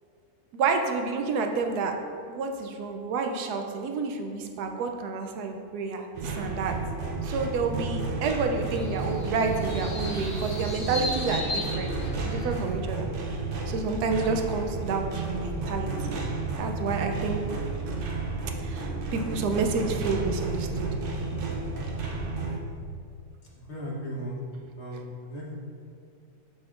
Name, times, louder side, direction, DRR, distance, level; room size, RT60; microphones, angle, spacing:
voice 1, 0.5-2.0 2.3-6.8 7.2-13.1 13.7-16.2 16.6-17.4 18.6-20.9, right 4 dB, 85° right, 4 dB, 1.2 m, -29 dB
sound 1, 6.1-22.6, right 3 dB, 60° right, 0.5 m, -32 dB
sound 2, 8.6-12.6, left 2 dB, 80° left, 2.2 m, -37 dB
voice 2, 23.7-24.4 24.8-25.6, equal, 45° left, -5 dB, 1.4 m, -36 dB
7.1 x 6.3 x 2.5 m, 2.3 s
omnidirectional pair, 1.6 m